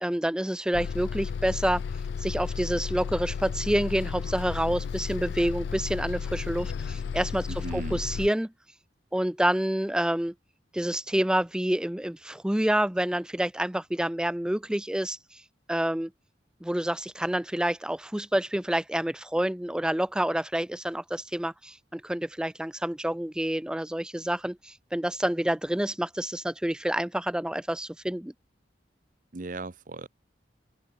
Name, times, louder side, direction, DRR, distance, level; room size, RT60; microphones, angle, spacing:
voice 1, 0.0-1.8 2.2-7.5 7.7-8.5 9.1-10.3 10.7-15.4 15.7-16.1 16.6-28.3, right 1 dB, 5° right, 0.3 m, -28 dB
Bus, 0.7-8.3, left 6 dB, 75° left, 0.3 m, -33 dB
voice 2, 7.5-8.0 29.3-30.1, right 3 dB, 45° right, 0.8 m, -37 dB
open air
head